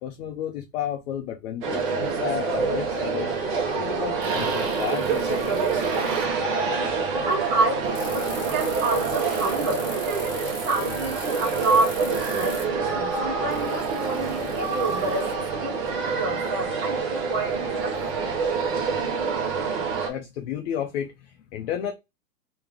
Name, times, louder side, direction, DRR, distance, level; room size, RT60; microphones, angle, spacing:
voice 1, 0.0-3.3 3.7-6.0 19.7-21.9, left 9 dB, 45° left, 0.7 m, -32 dB
sound 1, 1.6-20.1, right 5 dB, 30° right, 1.2 m, -27 dB
sound 2, 4.2-6.2 8.0-12.6 13.5-15.3, left 4 dB, 20° left, 1.7 m, -41 dB
voice 2, 7.3-15.3 15.6-18.0, right 3 dB, 15° right, 0.4 m, -28 dB
3.3 x 3.0 x 3.5 m
hypercardioid pair, 150°, 46 cm